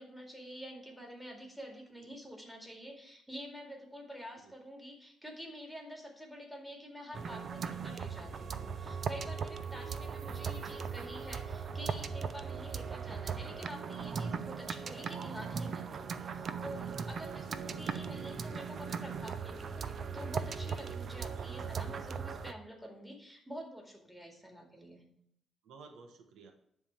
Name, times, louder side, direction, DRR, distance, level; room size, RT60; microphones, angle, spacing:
voice 1, 0.0-25.0, equal, ahead, 1 dB, 2.2 m, -48 dB
sound 1, 7.1-22.5, right 6 dB, 50° right, 0.5 m, -38 dB
voice 2, 9.7-10.2 17.4-18.1 21.3-21.8 25.6-26.5, right 5 dB, 85° right, 5 dB, 1.1 m, -56 dB
10.0 x 3.5 x 6.8 m, 0.72 s
cardioid pair, 115°, 0 cm